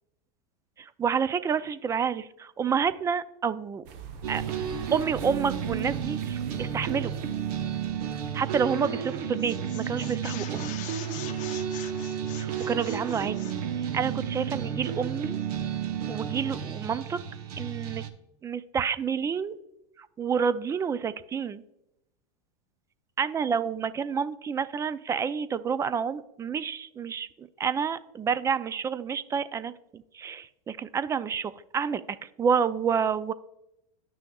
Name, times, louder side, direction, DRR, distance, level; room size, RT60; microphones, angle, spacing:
voice 1, 0.8-3.8 4.3-4.4 4.9-7.1 8.3-10.7 12.4-13.5 13.9-15.4 16.1-17.2 17.6-18.0 18.4-19.6 20.0-21.6 23.2-33.3, right 6 dB, 15° right, 15 dB, 0.3 m, -29 dB
sound 1, 3.9-8.8, right 5 dB, 55° right, 0.9 m, -44 dB
sound 2, 4.2-18.1, right 8 dB, 75° right, 0.9 m, -32 dB
sound 3, 8.8-9.1 9.4-13.6, left 12 dB, 40° left, 0.7 m, -43 dB
10.5 x 6.2 x 2.3 m, 0.84 s
supercardioid pair, 120°, 20 cm